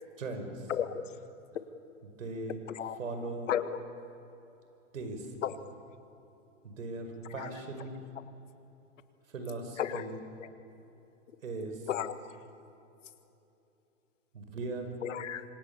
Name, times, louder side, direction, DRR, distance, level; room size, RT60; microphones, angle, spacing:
voice 1, 0.2-0.7 2.0-2.6 3.0-3.5 4.9-5.3 6.6-8.0 9.3-10.2 11.4-11.8 14.3-14.9, right 3 dB, 85° right, 6 dB, 5.4 m, -39 dB
voice 2, 0.7-1.0 2.7-3.0 3.5-3.7 5.4-5.5 7.3-7.5 9.8-10.1 10.4-10.5 11.9-12.1 15.0-15.4, left 9 dB, 75° left, 10 dB, 1.8 m, -33 dB
26.0 x 26.0 x 7.0 m, 2.9 s
hypercardioid pair, 125°, 38 cm